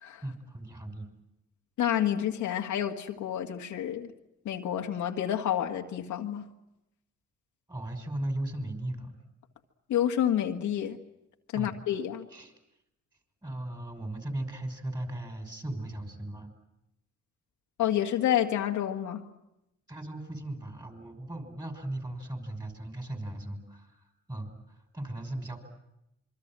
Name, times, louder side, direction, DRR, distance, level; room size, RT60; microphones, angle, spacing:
voice 1, 0.2-1.1 7.7-9.2 11.5-11.8 12.3-12.5 13.4-16.5 19.9-25.6, right 1 dB, 15° right, 6 dB, 5.9 m, -37 dB
voice 2, 1.8-4.1 4.5-6.5 9.9-11.0 11.5-12.3 17.8-19.2, left 10 dB, 75° left, 3 dB, 2.0 m, -29 dB
26.5 x 24.0 x 7.7 m, 0.87 s
cardioid pair, 90°, 30 cm